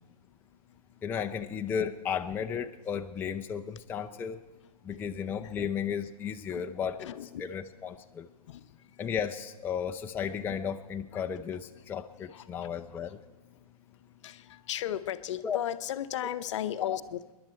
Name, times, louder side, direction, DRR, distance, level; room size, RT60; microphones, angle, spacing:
voice 1, 1.0-4.4 4.8-7.1 7.4-8.3 9.0-13.2 15.4-15.6 16.8-17.0, left 7 dB, 10° left, 5 dB, 0.4 m, -34 dB
voice 2, 7.0-7.4 8.5-8.6 12.3-12.4 14.2-17.3, left 11 dB, 50° left, 12 dB, 0.7 m, -35 dB
26.5 x 11.0 x 4.4 m, 1.1 s
figure-of-eight pair, 105°, 20 cm